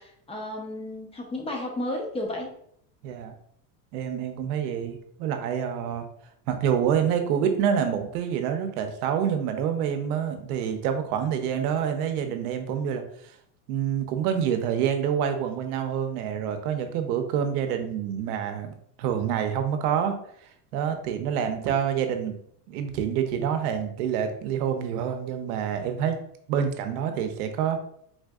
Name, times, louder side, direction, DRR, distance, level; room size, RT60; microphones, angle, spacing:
voice 1, 0.0-2.5, left 1 dB, 15° left, 0 dB, 0.6 m, -33 dB
voice 2, 3.0-3.3 3.9-6.1 6.5-13.0 13.7-20.2 20.7-22.3 22.7-26.2 26.5-27.8, right 8 dB, 75° right, 7 dB, 0.7 m, -27 dB
4.0 x 2.5 x 2.3 m, 0.68 s
supercardioid pair, 135°, 45 cm